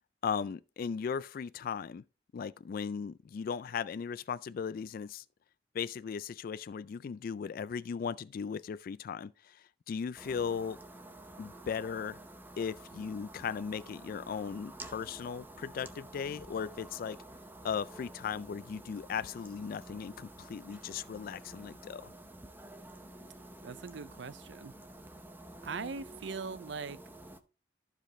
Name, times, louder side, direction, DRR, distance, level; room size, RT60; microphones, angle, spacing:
voice 1, 0.2-2.0 2.3-5.2 5.7-10.8 11.4-12.2 12.6-17.2 17.6-22.1, left 6 dB, 50° left, 0.3 m, -37 dB
sound 1, 10.2-27.4, right 1 dB, 10° right, 0.7 m, -50 dB
voice 2, 23.6-24.7 25.6-27.0, right 4 dB, 70° right, 0.5 m, -40 dB
14.0 x 5.1 x 3.0 m
head